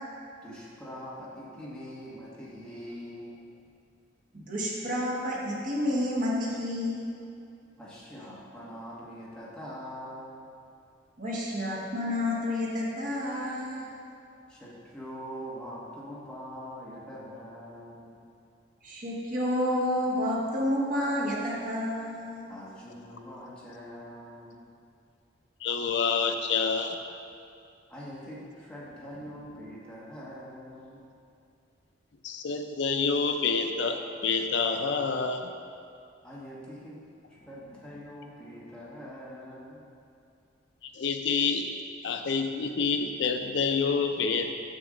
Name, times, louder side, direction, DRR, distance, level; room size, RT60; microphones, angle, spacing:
voice 1, 0.4-3.4 7.8-10.4 14.5-18.2 22.5-24.6 27.9-31.0 36.2-37.0 37.3-39.9, equal, 5° left, -7 dB, 1.4 m, -43 dB
voice 2, 4.3-7.1 11.2-13.9 18.8-22.5, left 1 dB, 45° right, -4 dB, 1.4 m, -30 dB
voice 3, 25.6-27.0 32.2-35.5 40.8-41.7 42.0-44.5, left 5 dB, 65° left, 5 dB, 0.5 m, -27 dB
7.0 x 6.7 x 3.9 m, 2.5 s
head